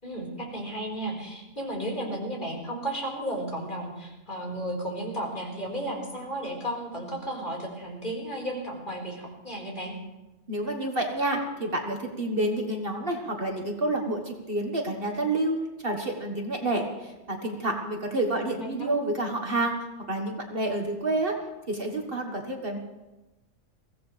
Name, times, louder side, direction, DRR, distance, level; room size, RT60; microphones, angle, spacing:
voice 1, 0.0-9.9 18.3-19.0, right 1 dB, 35° left, -2 dB, 5.0 m, -34 dB
voice 2, 10.5-15.6 15.8-19.8 20.1-21.4 21.7-22.8, right 2 dB, 45° right, 2 dB, 1.8 m, -29 dB
23.0 x 16.5 x 3.4 m, 1.0 s
omnidirectional pair, 1.3 m